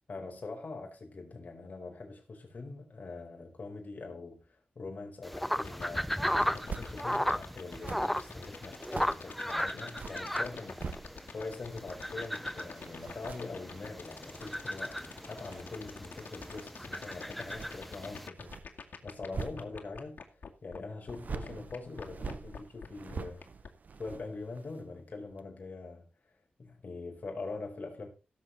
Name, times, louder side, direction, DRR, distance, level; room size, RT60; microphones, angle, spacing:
voice 1, 0.1-15.0 15.3-23.4 24.0-26.1 26.6-28.1, left 3 dB, 55° left, 4.8 m, -43 dB
sound 1, 5.2-18.3, equal, 5° left, 0.6 m, -36 dB
sound 2, 5.6-20.8 21.1-21.2 21.4-23.7, left 5 dB, 90° left, 2.1 m, -45 dB
sound 3, 6.6-6.9 7.7-9.3 9.7-11.4 11.7-20.1 21.1-24.9 25.3-25.4, right 5 dB, 60° right, 0.9 m, -45 dB
17.0 x 7.6 x 4.2 m
wide cardioid pair, 125°, 3 cm